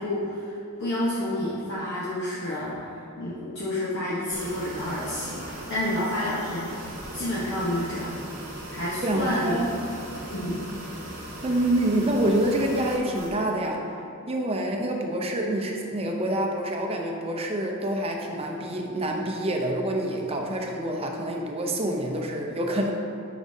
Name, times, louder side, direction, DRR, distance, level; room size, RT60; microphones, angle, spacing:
voice 1, 0.0-6.8 7.1-8.1 8.7-9.7 10.3-10.7, left 1 dB, 50° left, -8 dB, 1.0 m, -29 dB
sound 1, 4.3-13.3, right 1 dB, 40° right, 1.2 m, -39 dB
voice 2, 9.0-9.7 11.4-13.8 14.3-22.9, right 1 dB, 25° right, 1 dB, 0.6 m, -27 dB
9.7 x 5.0 x 2.7 m, 2.7 s
head